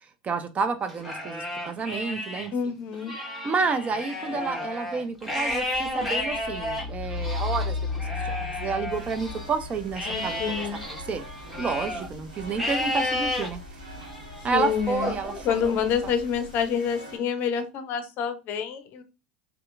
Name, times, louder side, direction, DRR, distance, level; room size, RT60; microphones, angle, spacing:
voice 1, 0.2-2.5 3.4-11.2 11.6-13.9 14.4-15.7, right 4 dB, 30° right, 9 dB, 0.4 m, -30 dB
Livestock farm animals working animals, 0.9-2.5 2.9-9.5 9.9-12.1 12.6-13.5 14.0-14.4 15.0-16.1, left 1 dB, 5° right, 1.1 m, -32 dB
voice 2, 2.5-3.1 10.1-10.8 14.5-15.1 15.4-19.0, left 7 dB, 50° left, 9 dB, 0.5 m, -27 dB
Truck, 5.4-16.7, left 4 dB, 20° left, 1.4 m, -37 dB
sound 1, 8.9-17.2, right 1 dB, 85° right, 1.1 m, -45 dB
2.8 x 2.4 x 2.3 m, 0.29 s
hypercardioid pair, 75°, 4 cm